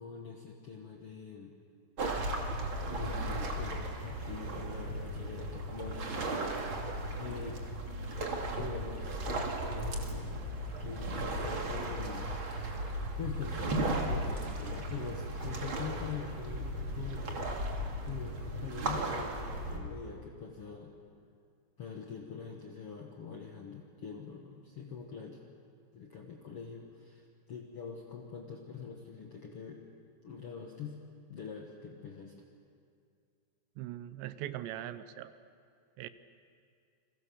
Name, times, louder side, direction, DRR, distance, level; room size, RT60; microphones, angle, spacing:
voice 1, 0.0-1.5 2.9-6.4 7.2-7.6 8.5-10.5 10.8-12.3 13.2-17.7 18.0-20.9 21.8-25.4 25.9-29.8 30.2-31.0 31.3-32.3, left 6 dB, 75° left, 0 dB, 1.3 m, -44 dB
sound 1, 2.0-19.8, right 1 dB, 35° right, 2.2 m, -36 dB
voice 2, 33.8-35.3 36.0-36.1, right 13 dB, 80° right, 12 dB, 2.9 m, -40 dB
29.0 x 22.5 x 7.1 m, 2.4 s
omnidirectional pair, 5.3 m